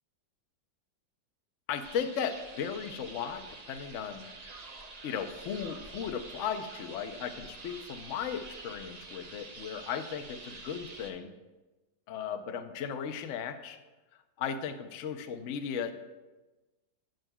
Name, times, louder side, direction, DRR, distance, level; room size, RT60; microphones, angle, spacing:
voice 1, 1.7-3.4 3.7-4.3 5.0-11.4 12.1-13.8 14.4-15.9, left 7 dB, 65° left, 8 dB, 0.7 m, -36 dB
sound 1, 1.8-11.1, right 3 dB, 55° right, 0.4 m, -47 dB
14.0 x 9.0 x 2.3 m, 1.2 s
omnidirectional pair, 2.0 m